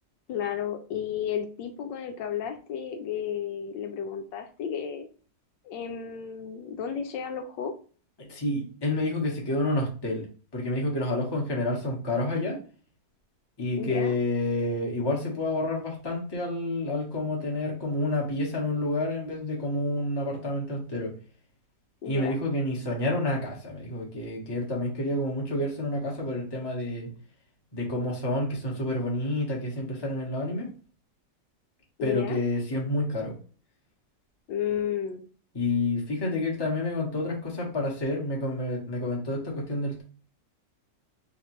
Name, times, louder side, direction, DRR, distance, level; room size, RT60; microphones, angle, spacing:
voice 1, 0.3-5.1 5.6-7.7 13.8-14.1 22.0-22.4 32.0-32.4 34.5-35.2, left 8 dB, 75° left, 6 dB, 1.3 m, -32 dB
voice 2, 8.2-10.2 10.5-12.6 13.6-21.1 22.0-27.1 27.7-30.7 32.0-33.4 35.5-40.0, left 1 dB, 15° left, -2 dB, 1.0 m, -29 dB
3.9 x 3.2 x 3.1 m, 0.39 s
omnidirectional pair, 2.0 m